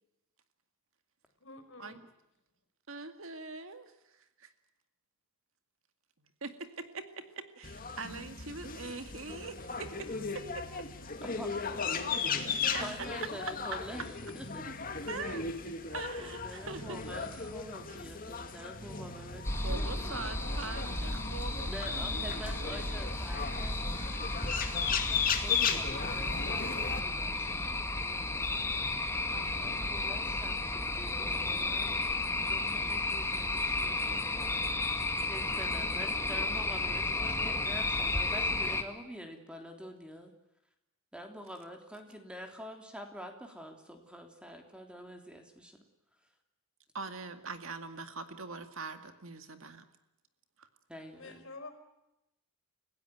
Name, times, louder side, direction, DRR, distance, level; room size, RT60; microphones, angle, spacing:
voice 1, 1.4-2.0 51.1-51.7, left 3 dB, 60° left, 8 dB, 4.9 m, -48 dB
voice 2, 2.9-4.5 6.2-10.9 12.4-12.9 15.1-15.5 15.9-17.0 19.6-22.7 29.3-30.0 46.9-49.9 50.6-50.7, right 3 dB, 65° right, 8 dB, 2.1 m, -43 dB
sound 1, 7.6-27.0, left 5 dB, 40° left, 2.3 m, -36 dB
voice 3, 11.2-11.5 12.6-14.6 16.2-20.8 21.7-23.8 24.7-28.3 29.6-32.0 32.4-34.5 35.2-40.3 41.1-45.8 50.9-51.4, equal, 5° right, 4 dB, 3.3 m, -47 dB
sound 2, 19.4-38.8, left 2 dB, 10° left, 2.0 m, -33 dB
30.0 x 16.5 x 9.3 m, 0.90 s
head